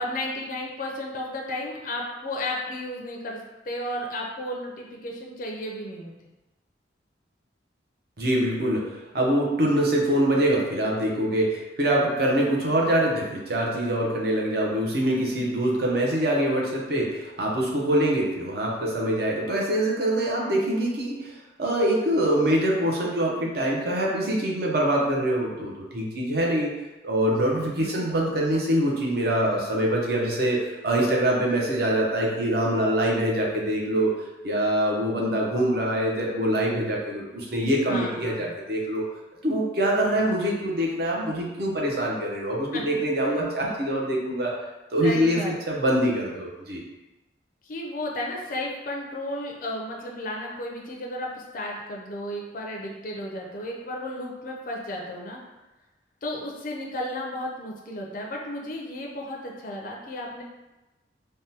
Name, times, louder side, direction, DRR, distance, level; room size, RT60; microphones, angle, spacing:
voice 1, 0.0-6.3 27.8-28.2 37.9-38.5 42.7-43.0 45.0-45.5 47.6-55.4 56.2-60.4, left 1 dB, 45° left, -1 dB, 0.4 m, -33 dB
voice 2, 8.2-26.7 27.0-34.1 34.4-39.0 39.4-44.6 44.9-45.4 45.7-46.8, right 1 dB, 55° right, -2 dB, 0.7 m, -24 dB
3.5 x 2.2 x 2.7 m, 1.1 s
head